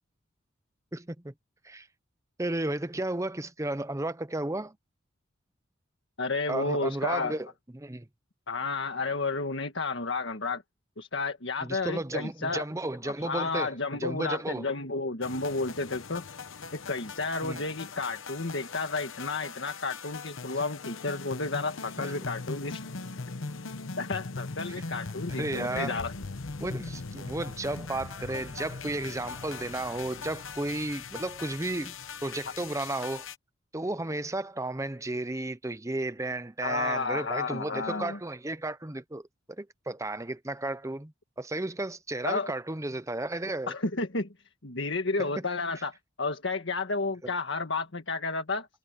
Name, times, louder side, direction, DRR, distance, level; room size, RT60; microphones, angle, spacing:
voice 1, 0.9-1.3 1.6-1.9 2.4-4.8 6.5-7.5 7.7-8.1 11.6-14.7 17.4-17.6 22.0-22.1 25.3-26.0 26.6-32.0 32.2-33.3 33.7-39.2 39.6-43.8 45.2-45.4 47.2-47.3, right 2 dB, 15° right, 0.8 m, -33 dB
voice 2, 6.2-7.4 8.5-10.6 11.0-12.6 13.0-16.2 16.7-22.8 24.0-26.1 36.6-38.2 42.2-42.5 43.7-44.3 44.6-45.9 46.2-48.7, left 3 dB, 65° left, 1.7 m, -31 dB
sound 1, 15.2-33.4, left 4 dB, 85° left, 1.0 m, -40 dB
head